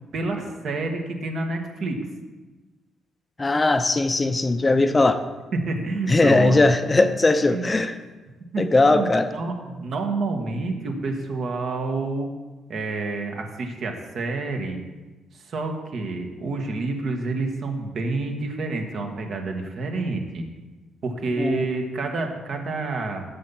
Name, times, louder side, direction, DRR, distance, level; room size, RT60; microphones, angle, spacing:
voice 1, 0.0-2.1 5.0-5.1 5.5-6.6 6.9-7.1 7.5-7.7 8.5-12.3 12.7-14.8 15.3-20.4 21.0-23.2, right 3 dB, 60° right, 4 dB, 1.4 m, -28 dB
voice 2, 3.4-5.2 6.1-7.9 8.6-9.3 21.4-21.6, left 2 dB, 25° left, 10 dB, 0.6 m, -19 dB
7.6 x 5.6 x 7.1 m, 1.2 s
cardioid pair, 90°, 0 cm